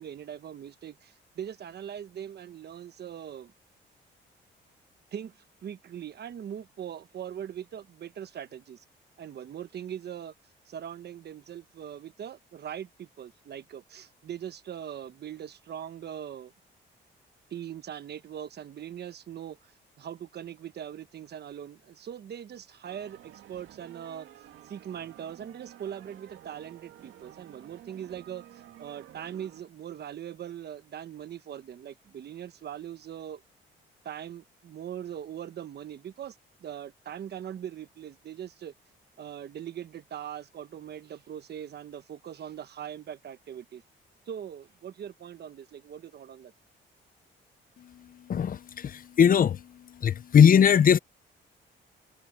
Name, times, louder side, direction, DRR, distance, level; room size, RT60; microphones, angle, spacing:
voice 1, 0.0-3.5 5.1-8.8 9.2-10.3 10.7-16.5 17.5-19.7 20.0-24.3 24.6-33.4 34.0-38.7 39.2-43.8 44.3-46.5, right 9 dB, 55° right, 1.1 m, -41 dB
sound 1, 22.8-29.6, right 12 dB, 80° right, 2.1 m, -51 dB
voice 2, 48.3-49.6 50.0-51.0, left 8 dB, 45° left, 0.7 m, -20 dB
cardioid pair, 90°, 20 cm